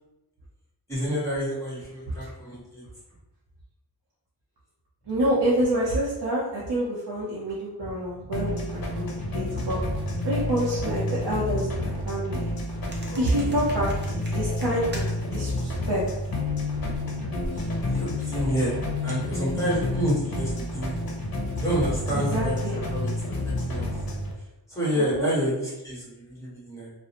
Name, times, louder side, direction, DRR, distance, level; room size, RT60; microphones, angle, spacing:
voice 1, 0.9-2.8 13.1-13.6 17.5-18.8 19.0-20.9 21.6-23.1 23.7-23.9 24.7-26.9, equal, 5° left, -8 dB, 1.2 m, -29 dB
voice 2, 5.1-9.8 10.2-12.5 13.2-16.0 22.1-22.8 24.9-25.3, right 1 dB, 75° right, -6 dB, 0.6 m, -27 dB
sound 1, 8.3-24.3, left 2 dB, 55° left, 0.6 m, -29 dB
sound 2, 12.9-15.4 15.7-17.9, right 1 dB, 25° right, 0.6 m, -40 dB
2.4 x 2.0 x 2.8 m, 1.0 s
wide cardioid pair, 60°, 42 cm